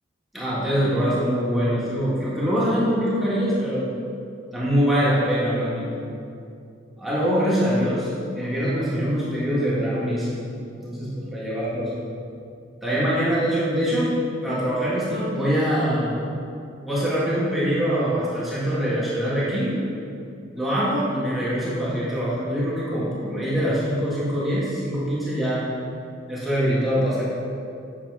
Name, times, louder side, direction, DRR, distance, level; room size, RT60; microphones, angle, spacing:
voice 1, 0.3-3.9 4.5-5.9 7.0-10.3 10.8-11.9 12.8-14.2 14.4-16.1 16.8-19.8 20.5-25.6 26.3-27.2, equal, ahead, -10 dB, 1.6 m, -23 dB
8.6 x 6.4 x 4.7 m, 2.6 s
head